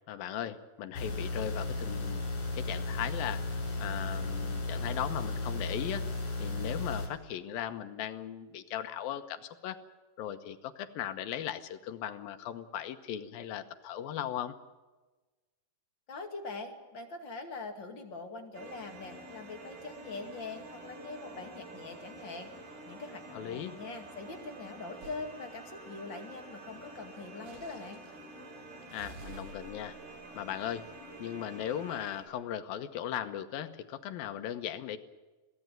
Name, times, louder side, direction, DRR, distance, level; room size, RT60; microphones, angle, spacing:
voice 1, 0.1-2.2 2.5-3.4 3.8-6.1 6.4-9.8 10.2-14.5 23.3-23.7 28.9-30.0 30.4-30.9 31.2-35.0, left 10 dB, 80° left, 9 dB, 2.8 m, -38 dB
sound 1, 0.9-7.1, left 2 dB, 55° left, 6.1 m, -35 dB
voice 2, 16.1-22.5 22.9-28.0, left 3 dB, 35° left, 3 dB, 2.6 m, -43 dB
sound 2, 18.5-32.2, right 2 dB, 90° right, 5.7 m, -48 dB
sound 3, 25.0-25.3 27.4-28.2 28.9-31.5, right 4 dB, 50° right, 3.4 m, -52 dB
22.5 x 16.5 x 9.0 m, 1.2 s
omnidirectional pair, 4.2 m